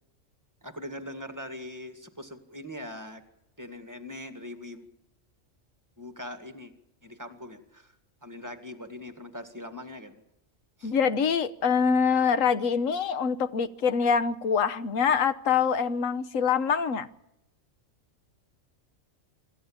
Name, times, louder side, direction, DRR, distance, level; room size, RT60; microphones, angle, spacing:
voice 1, 0.6-3.2 3.6-4.9 6.0-6.7 7.0-7.9 8.2-10.2 10.8-10.9, left 1 dB, 15° right, 8 dB, 2.0 m, -41 dB
voice 2, 10.8-17.1, left 6 dB, 80° left, 13 dB, 1.3 m, -25 dB
26.0 x 13.5 x 8.9 m, 0.90 s
omnidirectional pair, 1.3 m